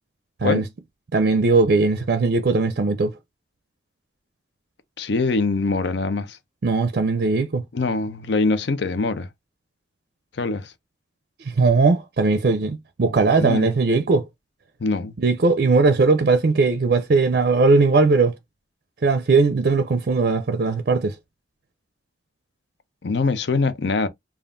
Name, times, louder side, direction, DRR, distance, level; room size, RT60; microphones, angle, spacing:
voice 1, 1.1-3.1 6.6-7.6 11.4-14.2 15.2-18.3 19.0-21.1, right 3 dB, 55° right, 0.4 m, -19 dB
voice 2, 5.0-6.4 7.7-9.3 10.3-10.7 13.4-13.7 14.8-15.1 23.0-24.1, left 3 dB, 70° left, 0.6 m, -23 dB
5.2 x 2.4 x 2.5 m
head